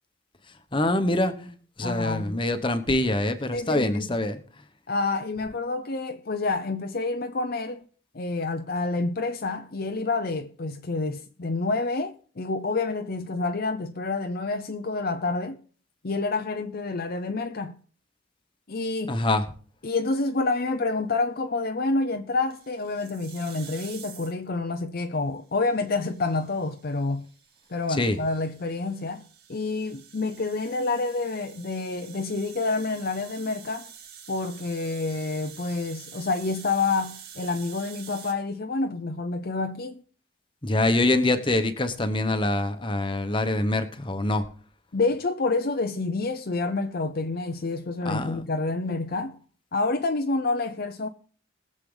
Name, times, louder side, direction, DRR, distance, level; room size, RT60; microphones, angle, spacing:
voice 1, 0.7-4.4 19.1-19.4 27.9-28.2 40.6-44.4 48.0-48.5, left 1 dB, 25° left, 1.2 m, -25 dB
voice 2, 1.8-2.4 3.5-4.1 4.9-7.9 8.1-15.6 16.0-17.8 18.7-19.2 19.8-27.3 27.7-29.2 29.5-33.9 34.3-40.0 44.9-49.4 49.7-51.1, left 3 dB, 50° left, 0.7 m, -28 dB
sound 1, 22.5-24.5 25.5-38.3, right 8 dB, 50° right, 2.2 m, -47 dB
20.5 x 7.6 x 4.0 m
head